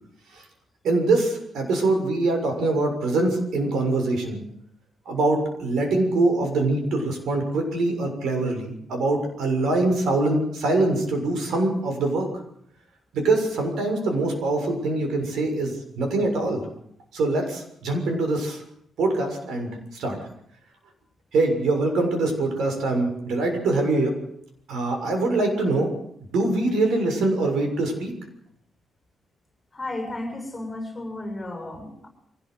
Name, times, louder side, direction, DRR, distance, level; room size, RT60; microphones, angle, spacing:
voice 1, 0.8-4.4 5.0-12.3 13.1-16.6 17.1-18.6 19.0-20.2 21.3-24.1 24.7-25.9 26.3-28.1, right 2 dB, 85° right, 4 dB, 6.8 m, -23 dB
voice 2, 29.7-32.1, left 2 dB, 15° left, 4 dB, 7.0 m, -33 dB
24.0 x 18.5 x 8.1 m, 0.72 s
wide cardioid pair, 175°, 0 cm